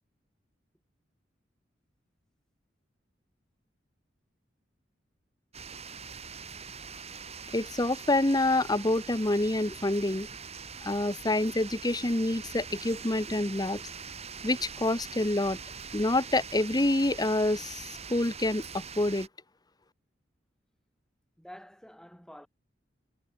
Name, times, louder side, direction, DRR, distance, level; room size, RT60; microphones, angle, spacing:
sound 1, 5.5-19.3, right 6 dB, 35° right, 5.9 m, -43 dB
voice 1, 7.5-10.3 10.8-13.8 14.4-15.6 15.9-19.3, left 2 dB, 20° left, 1.2 m, -27 dB
voice 2, 21.4-22.5, equal, 5° left, 7.4 m, -48 dB
head